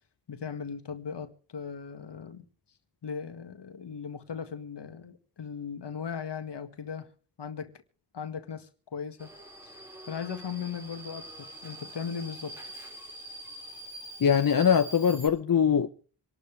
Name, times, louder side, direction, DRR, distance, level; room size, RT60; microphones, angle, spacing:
voice 1, 0.3-2.5 3.0-7.1 7.4-7.7 8.1-9.3 9.6-9.7 10.1-12.6, left 6 dB, 70° left, 1.9 m, -38 dB
Subway metro underground, 9.2-15.3, right 1 dB, 5° right, 5.9 m, -44 dB
voice 2, 14.2-15.9, left 7 dB, 50° left, 0.9 m, -22 dB
26.0 x 12.0 x 3.4 m
cardioid pair, 55°, 43 cm